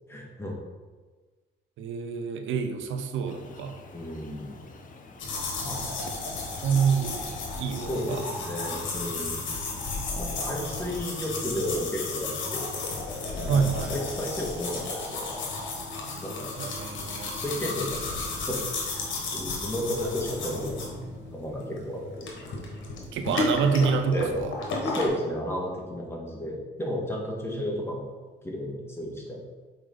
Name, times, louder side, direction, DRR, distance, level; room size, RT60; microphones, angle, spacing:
voice 1, 0.1-0.5 3.9-4.6 5.6-5.9 7.9-9.5 10.1-12.7 13.3-15.4 16.2-16.5 17.2-18.6 18.8-20.9 21.3-22.3 24.1-24.4 24.8-28.0 28.4-29.4, equal, 10° left, -2 dB, 1.7 m, -33 dB
voice 2, 1.8-3.8 6.0-6.1 6.5-7.3 7.6-8.2 13.4-13.9 16.6-17.4 23.1-24.6 27.5-27.6, right 6 dB, 75° right, 7 dB, 0.7 m, -27 dB
sound 1, 3.2-8.4, left 3 dB, 40° left, 0.9 m, -48 dB
sound 2, 5.2-25.1, left 3 dB, 75° left, 1.5 m, -33 dB
6.5 x 4.6 x 3.9 m, 1.4 s
cardioid pair, 90°, 20 cm